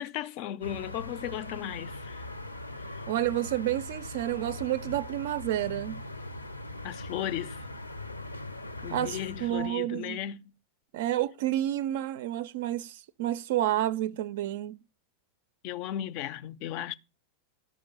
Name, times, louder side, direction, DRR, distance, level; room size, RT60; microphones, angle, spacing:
voice 1, 0.0-2.3 6.8-7.6 8.8-10.4 15.6-16.9, left 12 dB, 45° left, 0.5 m, -35 dB
sound 1, 0.6-9.7, left 1 dB, 80° left, 0.8 m, -40 dB
voice 2, 3.1-6.0 8.9-10.2 10.9-14.8, right 13 dB, 55° right, 0.4 m, -30 dB
12.5 x 5.1 x 5.6 m
figure-of-eight pair, 90°, 0 cm